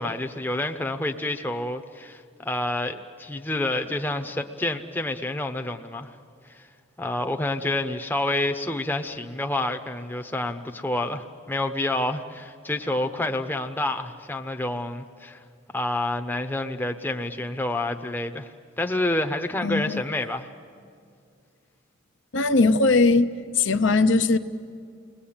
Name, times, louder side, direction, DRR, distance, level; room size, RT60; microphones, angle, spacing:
voice 1, 0.0-6.2 6.4-6.7 7.0-15.4 15.7-18.5 18.8-20.5, left 1 dB, 10° left, 5 dB, 0.8 m, -28 dB
voice 2, 19.6-20.0 22.3-23.3 23.6-24.4, left 3 dB, 60° left, 8 dB, 0.7 m, -19 dB
29.5 x 20.0 x 8.8 m, 2.3 s
head